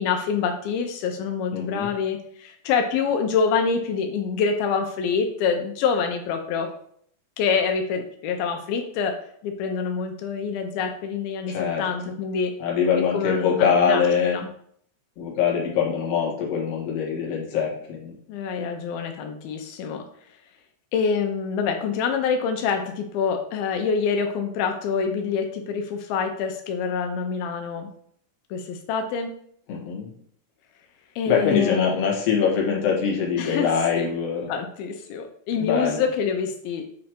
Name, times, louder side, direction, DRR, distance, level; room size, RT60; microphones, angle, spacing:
voice 1, 0.0-6.7 7.4-12.5 13.1-14.0 14.3-14.5 18.3-20.1 20.9-27.9 28.5-29.3 31.2-31.9 33.4-33.7 34.0-34.1 34.5-36.9, left 6 dB, 85° left, 5 dB, 2.5 m, -26 dB
voice 2, 1.5-1.9 11.5-11.8 12.6-14.4 15.2-18.2 29.7-30.1 31.3-34.5 35.6-36.0, left 6 dB, 55° left, -3 dB, 2.1 m, -23 dB
7.9 x 3.2 x 4.3 m, 0.64 s
omnidirectional pair, 4.3 m